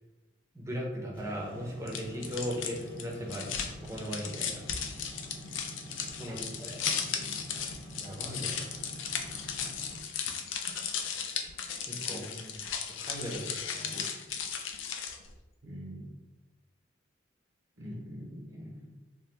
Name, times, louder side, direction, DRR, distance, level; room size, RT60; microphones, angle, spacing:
voice 1, 0.5-3.5 3.8-4.6 6.2-6.8 8.0-8.6 11.9-12.4 13.0-14.0 17.9-18.0, equal, 15° right, -3 dB, 0.6 m, -38 dB
sound 1, 1.1-9.9, right 1 dB, 10° left, 0.9 m, -47 dB
sound 2, 1.9-15.3, left 7 dB, 80° left, 0.4 m, -36 dB
voice 2, 6.3-6.7 7.1-7.5 12.0-12.6 13.9-14.2 15.6-16.1 17.8-18.9, equal, 70° right, -3 dB, 0.7 m, -45 dB
2.8 x 2.2 x 3.2 m, 1.1 s
head